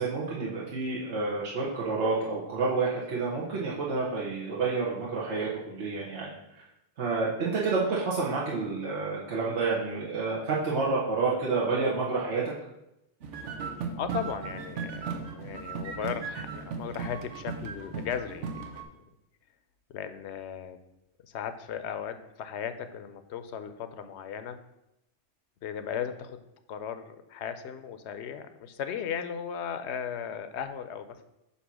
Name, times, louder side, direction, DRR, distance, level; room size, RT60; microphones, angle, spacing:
voice 1, 0.0-6.3 7.0-12.4, right 4 dB, 70° right, -6 dB, 1.4 m, -29 dB
sound 1, 13.2-18.8, right 5 dB, 90° right, 1.2 m, -37 dB
voice 2, 14.0-18.8 19.9-20.8 21.2-24.6 25.6-26.4 26.7-31.2, left 8 dB, 75° left, 10 dB, 0.9 m, -36 dB
8.3 x 2.8 x 6.0 m, 0.88 s
omnidirectional pair, 1.2 m